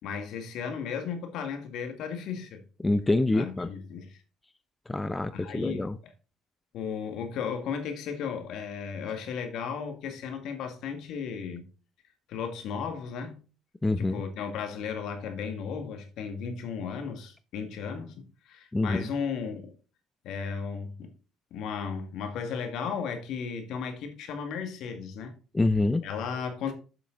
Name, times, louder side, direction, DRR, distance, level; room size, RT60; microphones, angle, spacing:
voice 1, 0.0-2.6 3.3-4.2 5.3-5.9 6.7-11.6 12.3-13.4 14.0-19.7 20.2-21.1 21.5-25.3 26.0-26.7, left 6 dB, 70° left, 1.9 m, -35 dB
voice 2, 2.8-3.7 4.9-6.0 13.8-14.2 18.7-19.1 25.5-26.0, left 2 dB, 15° left, 0.6 m, -26 dB
7.5 x 6.9 x 3.8 m
supercardioid pair, 70°, 0 cm